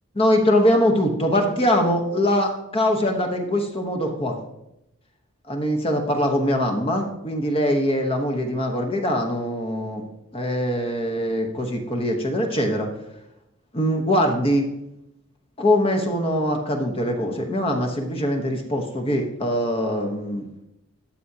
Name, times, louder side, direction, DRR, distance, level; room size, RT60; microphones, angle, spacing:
voice 1, 0.1-4.4 5.5-10.0 10.3-12.9 13.7-14.7 15.6-20.4, equal, 25° left, 2 dB, 1.0 m, -22 dB
12.5 x 7.2 x 2.8 m, 0.86 s
head